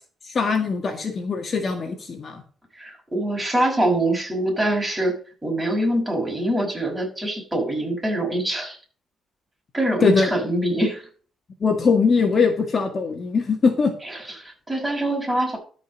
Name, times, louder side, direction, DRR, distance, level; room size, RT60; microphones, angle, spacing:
voice 1, 0.2-2.4 10.0-10.3 11.6-13.9, left 4 dB, 45° left, 4 dB, 1.8 m, -21 dB
voice 2, 2.7-5.2 5.4-8.8 9.7-11.1 14.0-15.6, right 1 dB, 15° right, 0 dB, 5.8 m, -24 dB
13.0 x 5.3 x 5.2 m, 0.42 s
cardioid pair, 90°, 0 cm